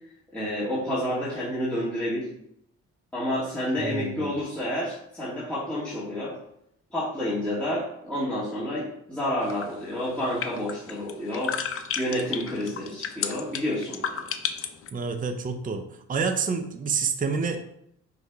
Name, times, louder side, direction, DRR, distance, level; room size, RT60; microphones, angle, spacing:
voice 1, 0.3-2.3 3.1-6.4 6.9-11.5 12.0-14.3, left 1 dB, 5° left, -11 dB, 2.4 m, -29 dB
voice 2, 3.8-4.3 14.9-15.8 16.1-17.6, right 5 dB, 30° right, 6 dB, 0.7 m, -28 dB
sound 1, 9.4-14.9, left 7 dB, 45° left, 0.7 m, -33 dB
6.5 x 3.4 x 4.7 m, 0.74 s
cardioid pair, 90°, 30 cm